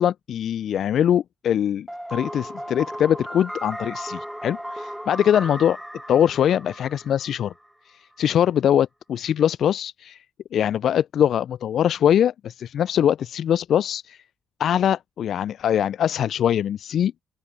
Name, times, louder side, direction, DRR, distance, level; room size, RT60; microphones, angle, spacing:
voice 1, 0.0-5.8 6.1-7.5 7.9-10.2 10.5-14.2 14.6-17.1, left 9 dB, 60° left, 0.4 m, -22 dB
sound 1, 1.9-7.7, equal, 5° right, 0.5 m, -36 dB
open air
hypercardioid pair, 45°, 0 cm